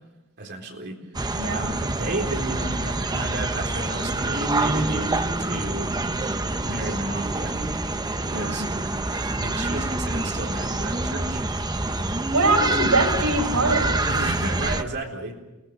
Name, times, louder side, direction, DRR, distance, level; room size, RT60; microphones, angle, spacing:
voice 1, 0.4-1.0 1.5-5.9 6.6-7.7 8.2-8.6 9.1-11.4 12.7-12.9 14.0-15.4, right 2 dB, 55° right, 1 dB, 4.2 m, -33 dB
sound 1, 1.1-14.8, right 2 dB, 20° right, 0.9 m, -26 dB
voice 2, 1.4-1.7 8.3-8.7 12.3-13.9, right 2 dB, 80° right, 2 dB, 5.7 m, -23 dB
29.0 x 19.0 x 6.8 m, 1.1 s
head